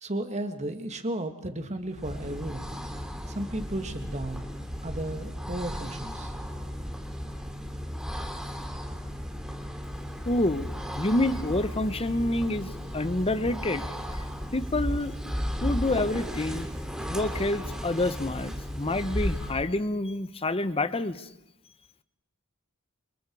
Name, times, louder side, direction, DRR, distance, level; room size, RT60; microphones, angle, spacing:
voice 1, 0.0-2.7 3.3-4.5 4.8-6.3, right 1 dB, 30° right, 7 dB, 2.2 m, -34 dB
sound 1, 1.9-19.7, equal, 5° right, 2.6 m, -35 dB
voice 2, 10.2-10.7 11.0-13.8 14.2-14.3 14.5-15.1 15.6-16.7 17.1-21.3, left 2 dB, 25° left, 13 dB, 0.9 m, -28 dB
29.5 x 28.0 x 4.8 m, 0.88 s
head